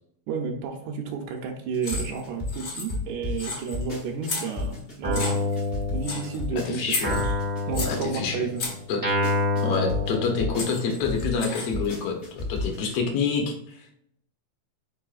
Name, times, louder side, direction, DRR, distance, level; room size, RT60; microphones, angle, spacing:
voice 1, 0.3-5.5 5.9-7.0 7.7-8.6, right 6 dB, 80° right, 1 dB, 1.9 m, -31 dB
sound 1, 1.7-8.4 8.9-12.9, left 3 dB, 40° left, 0.8 m, -32 dB
sound 2, 1.8-2.2 2.5-3.1 3.4-3.8 4.2-4.8 5.1-5.6 6.0-6.4 6.9-8.0 8.6-8.9 10.1-10.2 10.6-11.9, left 3 dB, 90° left, 0.9 m, -33 dB
Guitar, 5.0-6.5 7.0-10.9, left 2 dB, 30° right, 0.4 m, -28 dB
voice 2, 6.5-7.2 7.8-8.5 8.9-9.0 9.6-13.8, left 5 dB, 70° left, 2 dB, 1.5 m, -27 dB
4.7 x 4.5 x 2.4 m, 0.73 s
omnidirectional pair, 3.6 m